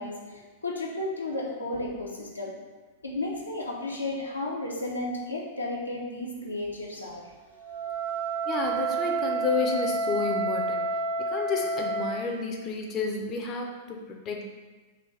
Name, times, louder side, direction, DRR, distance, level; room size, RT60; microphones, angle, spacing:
voice 1, 0.0-2.5 3.0-7.2, left 2 dB, 85° left, -2 dB, 0.5 m, -33 dB
Wind instrument woodwind instrument, 7.6-12.3, right 2 dB, 60° right, 0.8 m, -29 dB
voice 2, 8.5-10.9 11.2-14.5, left 4 dB, 30° left, 1 dB, 0.4 m, -31 dB
3.7 x 2.3 x 3.2 m, 1.3 s
figure-of-eight pair, 95°, 0 cm